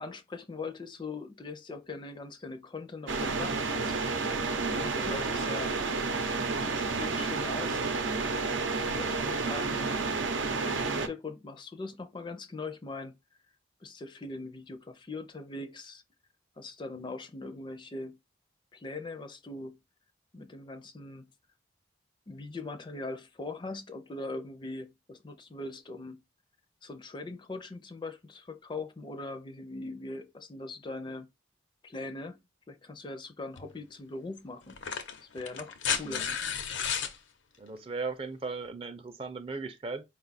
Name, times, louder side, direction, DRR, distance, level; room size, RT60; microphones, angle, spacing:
voice 1, 0.0-4.0 4.6-5.7 6.6-8.0 8.9-9.9 10.2-13.1 13.8-16.0 16.6-18.2 18.7-19.7 20.3-21.2 22.3-26.2 26.8-31.3 31.8-32.4 32.7-34.8 35.2-36.3, left 3 dB, 25° left, 0.4 m, -41 dB
sound 1, 3.1-11.1, right 4 dB, 90° right, 0.7 m, -30 dB
sound 2, 33.6-33.7 34.7-37.2 38.7-38.8, left 7 dB, 85° left, 0.8 m, -33 dB
voice 2, 36.0-36.4 37.6-40.0, right 4 dB, 30° right, 0.5 m, -37 dB
4.8 x 2.3 x 4.0 m
head